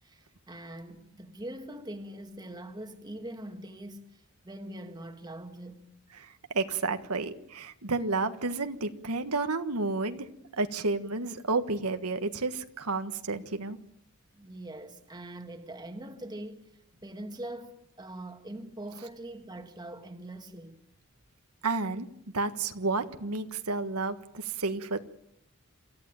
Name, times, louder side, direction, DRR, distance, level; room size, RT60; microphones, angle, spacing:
voice 1, 0.0-5.9 14.3-16.7 17.0-20.8, right 1 dB, 20° right, 1.8 m, -43 dB
voice 2, 6.2-10.3 10.5-13.8 21.6-22.1 22.3-25.0, right 3 dB, 85° right, 1.6 m, -31 dB
27.5 x 14.5 x 9.1 m
head